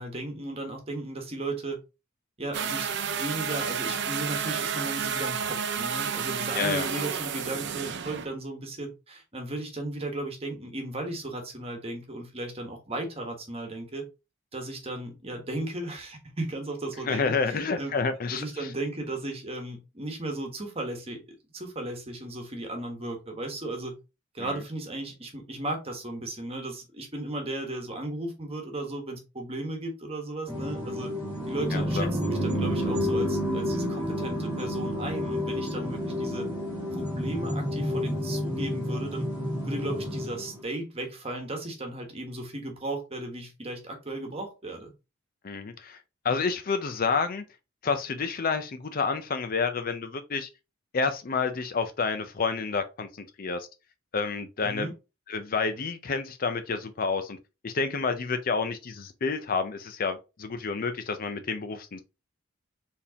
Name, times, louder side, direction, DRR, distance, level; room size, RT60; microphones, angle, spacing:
voice 1, 0.0-1.8 2.4-14.0 14.5-18.0 18.3-21.2 21.5-24.0 24.3-31.1 31.5-36.5 36.9-39.3 39.6-44.9 54.6-54.9, right 2 dB, 30° right, 1.2 m, -35 dB
sound 1, 2.5-8.3, right 7 dB, 60° right, 0.6 m, -31 dB
voice 2, 6.5-6.9 17.1-18.4 24.4-24.6 31.7-32.1 45.4-46.0 46.2-47.4 47.8-50.5 50.9-53.7 54.1-54.9 55.3-57.4 57.6-62.0, left 4 dB, 45° left, 0.5 m, -29 dB
sound 2, 30.5-40.6, equal, 10° right, 1.9 m, -30 dB
4.5 x 3.5 x 2.8 m
head